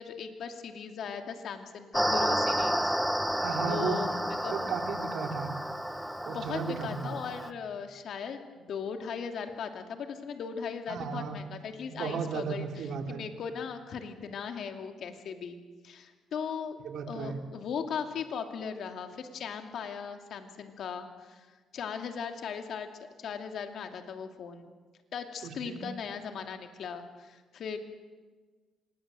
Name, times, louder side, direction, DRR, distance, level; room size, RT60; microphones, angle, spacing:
voice 1, 0.0-2.9 3.3-4.5 6.3-16.8 17.1-21.5 21.7-22.9 23.2-24.7 25.1-27.8, left 6 dB, 65° left, 5 dB, 2.7 m, -38 dB
sound 1, 1.9-7.5, equal, 5° right, 1.3 m, -31 dB
voice 2, 3.4-4.0 4.5-5.5 6.2-7.1 10.9-11.4 11.9-13.2 16.8-17.4 25.4-25.8, right 6 dB, 70° right, 4 dB, 3.2 m, -35 dB
25.5 x 20.5 x 7.7 m, 1.4 s
cardioid pair, 90°, 0 cm